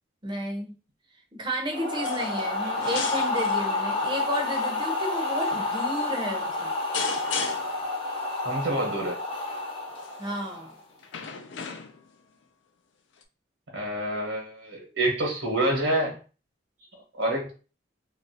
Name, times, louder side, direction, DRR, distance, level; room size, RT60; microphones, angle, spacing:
voice 1, 0.2-0.7 1.3-6.7 10.2-10.7, equal, 25° right, 2 dB, 0.6 m, -32 dB
sound 1, 1.7-10.8, left 2 dB, 30° left, 0.8 m, -29 dB
sound 2, 2.0-2.5 2.8-3.6 4.3-4.7 5.5-5.7 6.9-7.8 9.9-10.3 11.0-12.1 13.2-13.3, left 6 dB, 70° left, 0.4 m, -35 dB
voice 2, 8.4-9.2 13.7-16.2 17.2-17.5, right 1 dB, 80° right, 0 dB, 1.0 m, -27 dB
2.9 x 2.5 x 2.8 m, 0.35 s
head